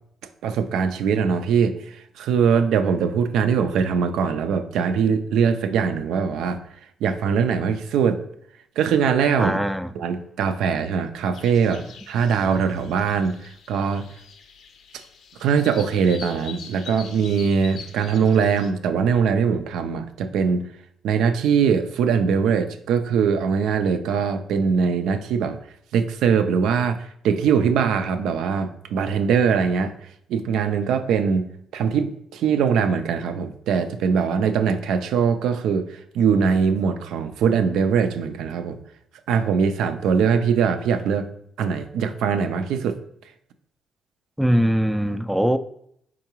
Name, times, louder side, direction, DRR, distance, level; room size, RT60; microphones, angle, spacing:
voice 1, 0.4-6.6 7.0-8.2 8.8-9.6 10.0-14.0 14.9-15.0 15.4-20.6 21.0-25.6 25.9-31.5 31.7-38.8 39.3-41.3 41.6-43.0, right 6 dB, 80° right, 0.4 m, -22 dB
voice 2, 9.4-9.9 44.4-45.6, equal, 5° right, 0.3 m, -21 dB
sound 1, 11.3-18.7, left 6 dB, 75° left, 0.5 m, -44 dB
4.5 x 3.6 x 2.9 m
supercardioid pair, 65°, 0 cm